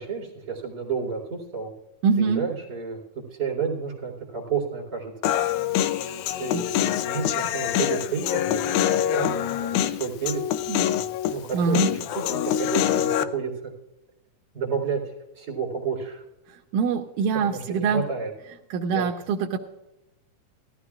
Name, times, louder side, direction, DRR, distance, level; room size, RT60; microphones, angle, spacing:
voice 1, 0.0-1.7 2.1-3.0 3.3-5.1 6.4-13.7 14.5-16.2 17.4-18.3 18.9-19.1, right 6 dB, 30° right, -3 dB, 4.3 m, -31 dB
voice 2, 2.0-2.5 6.0-6.2 6.5-6.7 10.7-10.8 11.5-11.9 16.7-18.0 18.7-19.6, right 5 dB, 85° right, 4 dB, 2.2 m, -24 dB
Human voice, 5.2-13.2, left 11 dB, 80° left, 2.0 m, -25 dB
18.0 x 14.0 x 2.4 m, 0.99 s
omnidirectional pair, 3.6 m